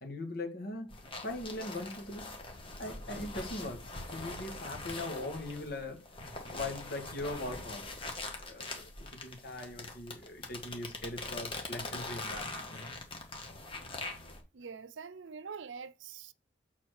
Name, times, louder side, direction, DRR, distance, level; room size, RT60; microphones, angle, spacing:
voice 1, 0.0-0.9 1.2-2.4 2.8-3.9 4.1-6.2 6.5-7.9 8.4-12.9, left 2 dB, 55° left, 1.8 m, -40 dB
sound 1, 0.9-14.4, left 2 dB, 30° left, 1.6 m, -43 dB
voice 2, 14.5-16.3, right 5 dB, 85° right, 0.6 m, -45 dB
7.1 x 4.2 x 6.4 m
head